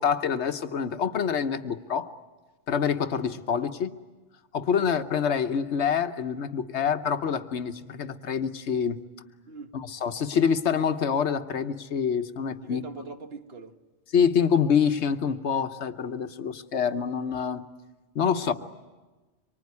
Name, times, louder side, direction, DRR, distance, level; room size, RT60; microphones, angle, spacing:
voice 1, 0.0-2.1 2.7-3.9 4.5-9.0 9.7-12.8 14.1-17.6 18.1-18.5, left 7 dB, 75° left, 1.3 m, -26 dB
voice 2, 12.6-13.8 18.4-18.5, right 4 dB, 60° right, 1.6 m, -42 dB
25.5 x 24.0 x 9.6 m
omnidirectional pair, 1.1 m